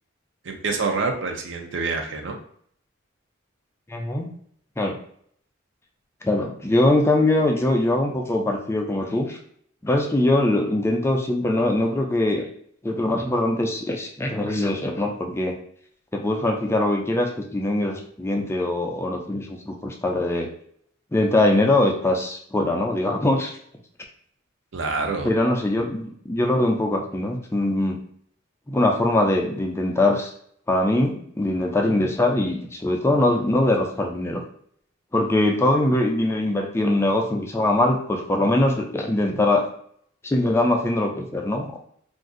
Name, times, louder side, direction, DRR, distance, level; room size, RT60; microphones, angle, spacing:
voice 1, 0.4-2.4 24.7-25.3, right 4 dB, 65° right, 3 dB, 0.6 m, -26 dB
voice 2, 3.9-4.3 4.8-4.9 6.2-9.4 9.8-12.5 12.8-15.5 16.1-20.5 21.1-23.5 25.2-28.0 28.7-30.3 30.7-34.4 35.1-39.7 40.2-41.9, left 1 dB, 15° left, 2 dB, 0.4 m, -22 dB
2.5 x 2.4 x 3.7 m, 0.62 s
head